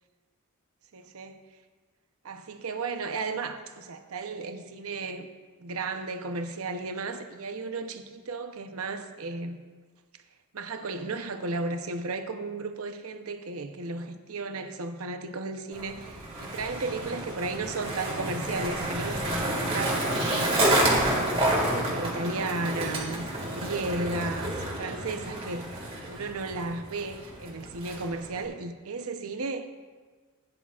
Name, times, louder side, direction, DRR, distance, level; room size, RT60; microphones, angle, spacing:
voice 1, 0.9-1.4 2.2-5.3 5.6-9.6 10.5-20.0 20.7-25.8 26.1-29.7, right 3 dB, 75° right, 0.8 m, -34 dB
Skateboard, 15.7-28.4, right 1 dB, 25° right, 1.9 m, -29 dB
15.5 x 9.8 x 2.4 m
head